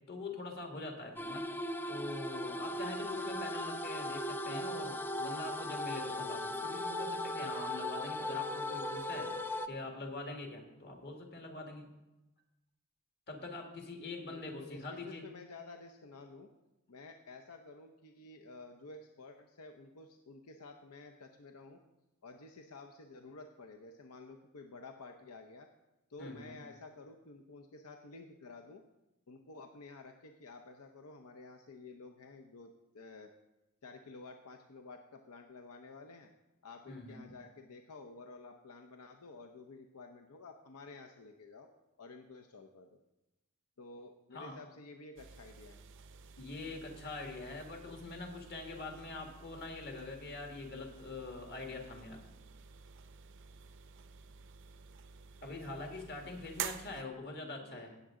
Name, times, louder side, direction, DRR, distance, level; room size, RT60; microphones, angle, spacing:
voice 1, 0.1-1.5 1.9-9.3 9.6-11.9 13.3-15.2 26.2-26.6 36.9-37.3 44.3-44.6 46.4-52.2 55.4-57.9, left 2 dB, 50° left, 2 dB, 1.9 m, -44 dB
sound 1, 1.2-9.7, left 1 dB, 10° left, 0.4 m, -38 dB
voice 2, 14.3-16.5 16.9-21.8 22.2-25.7 26.1-28.8 29.3-33.3 33.8-36.3 36.6-41.7 42.0-43.0 43.8-45.8 55.7-55.9 57.6-58.0, left 3 dB, 80° left, 5 dB, 0.7 m, -52 dB
sound 2, 45.2-57.0, right 8 dB, 60° right, 0.5 m, -50 dB
17.0 x 7.3 x 3.7 m, 0.98 s
head